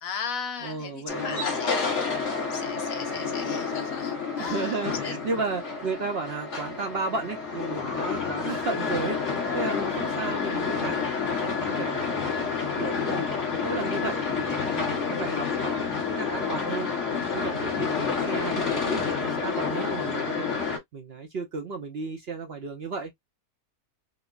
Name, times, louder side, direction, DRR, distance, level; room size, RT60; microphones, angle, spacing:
voice 1, 0.0-1.8 2.5-5.1, left 6 dB, 65° left, 1.1 m, -36 dB
voice 2, 0.6-1.6 4.4-11.1 11.4-12.4 12.8-13.3 13.6-16.9 17.3-20.6 20.9-23.1, right 4 dB, 55° right, 0.7 m, -34 dB
sound 1, 1.1-20.8, left 5 dB, 50° left, 1.6 m, -29 dB
5.0 x 2.1 x 2.4 m
omnidirectional pair, 1.6 m